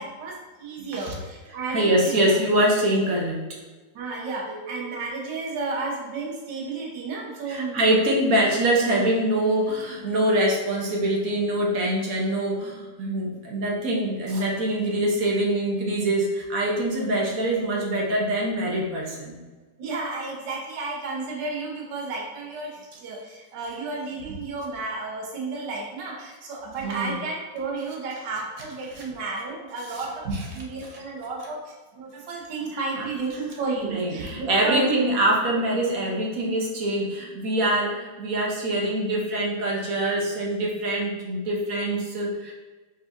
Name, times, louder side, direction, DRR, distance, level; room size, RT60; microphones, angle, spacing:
voice 1, 0.0-2.3 3.9-7.8 19.8-30.3 30.5-31.6 31.9-35.0, right 3 dB, 70° right, -3 dB, 1.6 m, -32 dB
voice 2, 1.7-3.4 4.4-4.8 7.5-19.4 26.8-27.2 29.9-30.6 30.9-31.0 32.7-33.1 33.8-42.5, right 1 dB, 55° right, -2 dB, 1.1 m, -24 dB
5.0 x 4.0 x 2.6 m, 1.3 s
omnidirectional pair, 2.0 m